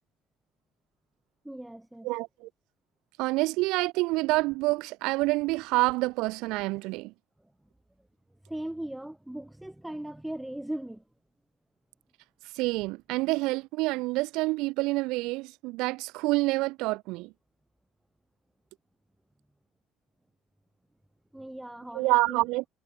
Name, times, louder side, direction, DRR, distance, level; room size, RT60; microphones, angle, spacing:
voice 1, 1.4-2.1 7.4-7.5 8.5-11.0 21.3-22.4, right 1 dB, 5° right, 5.3 m, -38 dB
voice 2, 2.0-2.5 3.2-7.1 12.5-17.3 21.9-22.6, right 22 dB, 75° right, 0.3 m, -27 dB
supercardioid pair, 90°, 0 cm